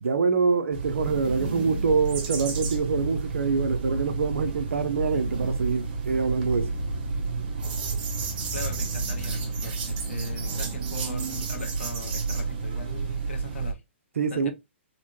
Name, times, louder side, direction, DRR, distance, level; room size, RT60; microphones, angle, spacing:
voice 1, 0.0-6.7 14.2-14.5, right 5 dB, 85° right, 0.7 m, -25 dB
sound 1, 0.7-13.7, right 4 dB, 45° right, 1.1 m, -30 dB
voice 2, 8.5-13.8 14.3-14.5, left 4 dB, 75° left, 0.9 m, -40 dB
4.1 x 2.2 x 3.0 m
hypercardioid pair, 145°, 7 cm